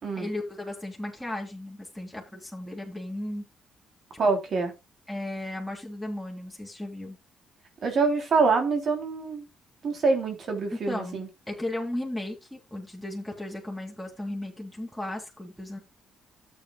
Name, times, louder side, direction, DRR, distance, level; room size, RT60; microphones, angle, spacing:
voice 1, 0.2-3.4 5.1-7.2 10.9-15.8, left 1 dB, ahead, 3.6 m, -35 dB
voice 2, 4.2-4.7 7.8-9.5 9.8-11.3, right 4 dB, 55° right, 3.2 m, -25 dB
13.5 x 8.3 x 2.3 m
cardioid pair, 90°, 0 cm